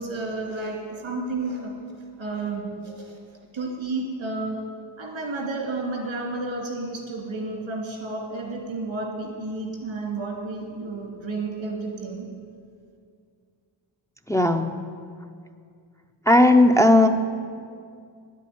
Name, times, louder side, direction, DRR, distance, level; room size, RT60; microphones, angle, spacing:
voice 1, 0.0-1.7 2.2-3.2 3.5-4.6 5.0-12.3, right 3 dB, 90° right, -1 dB, 2.9 m, -31 dB
voice 2, 14.3-14.7 16.3-17.1, left 1 dB, 5° left, 5 dB, 0.5 m, -16 dB
10.0 x 8.4 x 9.4 m, 2.2 s
wide cardioid pair, 105°, 45 cm